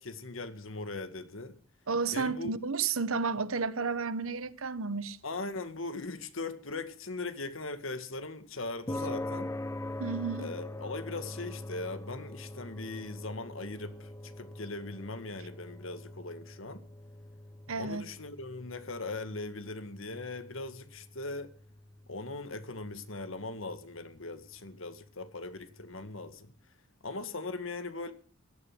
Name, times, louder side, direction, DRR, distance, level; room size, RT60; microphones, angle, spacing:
voice 1, 0.0-1.6 2.1-2.6 5.2-9.5 10.4-16.9 17.8-21.5 22.1-26.5 27.0-28.1, left 3 dB, 70° left, 2.0 m, -40 dB
voice 2, 1.9-5.2 10.0-10.5 17.7-18.1, right 5 dB, 85° right, 1.1 m, -32 dB
sound 1, 8.9-25.4, left 1 dB, 15° left, 0.7 m, -44 dB
17.0 x 12.5 x 6.1 m
head